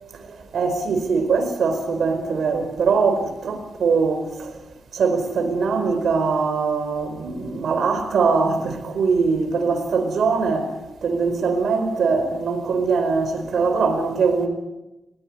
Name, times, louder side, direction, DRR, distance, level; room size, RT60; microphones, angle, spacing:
voice 1, 0.5-4.5 4.9-10.7 11.0-14.5, right 4 dB, 85° right, 4.8 m, -22 dB
22.0 x 20.0 x 9.8 m
cardioid pair, 85°, 0 cm